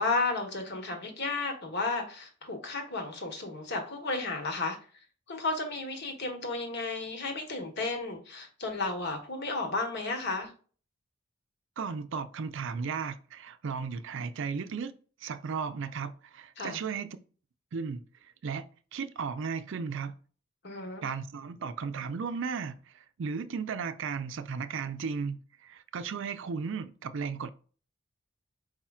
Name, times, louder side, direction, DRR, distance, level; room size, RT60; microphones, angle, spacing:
voice 1, 0.0-4.8 5.3-10.5 16.6-16.8 20.6-21.0, left 3 dB, 60° left, 1.2 m, -33 dB
voice 2, 11.8-14.9 15.2-17.1 17.7-18.0 18.4-18.7 18.9-20.2 21.0-22.8 23.2-27.5, right 5 dB, 65° right, 0.4 m, -35 dB
4.8 x 4.3 x 2.3 m
head